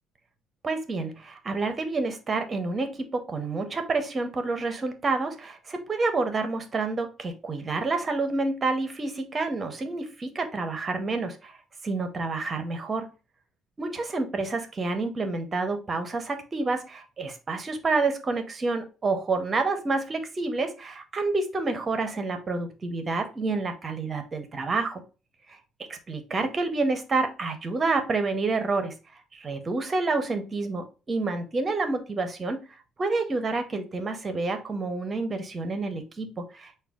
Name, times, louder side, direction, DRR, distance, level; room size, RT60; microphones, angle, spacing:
voice 1, 0.6-11.6 11.8-13.1 13.8-25.0 25.5-25.6 25.9-28.9 29.3-32.6 33.0-36.8, right 3 dB, 25° right, 7 dB, 0.6 m, -28 dB
5.9 x 2.3 x 3.5 m, 0.32 s
cardioid pair, 170°, 0 cm